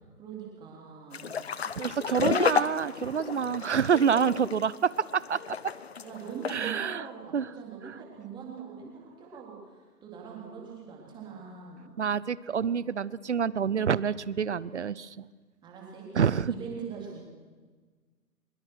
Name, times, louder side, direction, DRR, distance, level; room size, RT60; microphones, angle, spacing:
voice 1, 0.0-1.3 2.1-2.3 3.1-3.4 3.9-4.2 6.0-11.9 15.6-17.2, right 6 dB, 10° right, -2 dB, 3.7 m, -42 dB
sound 1, 1.1-6.6, left 6 dB, 40° left, 0.9 m, -32 dB
voice 2, 1.8-5.6 6.5-7.0 7.3-7.5 7.9-8.0 12.0-15.3 16.2-16.6, right 7 dB, 45° right, 21 dB, 0.7 m, -27 dB
23.5 x 22.5 x 6.4 m, 1.4 s
figure-of-eight pair, 150°, 47 cm